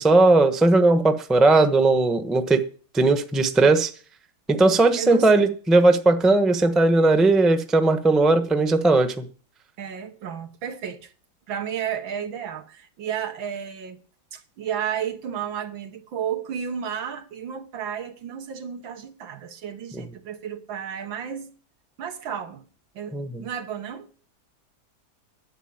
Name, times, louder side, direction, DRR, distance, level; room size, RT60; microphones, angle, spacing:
voice 1, 0.0-2.6 2.9-3.9 4.5-9.2 23.1-23.3, right 2 dB, ahead, 0.6 m, -18 dB
voice 2, 5.0-5.3 9.8-11.1 11.5-14.0 14.3-21.5 22.0-22.7 22.9-24.1, right 8 dB, 90° right, 2.1 m, -32 dB
11.0 x 7.9 x 8.9 m
omnidirectional pair, 2.1 m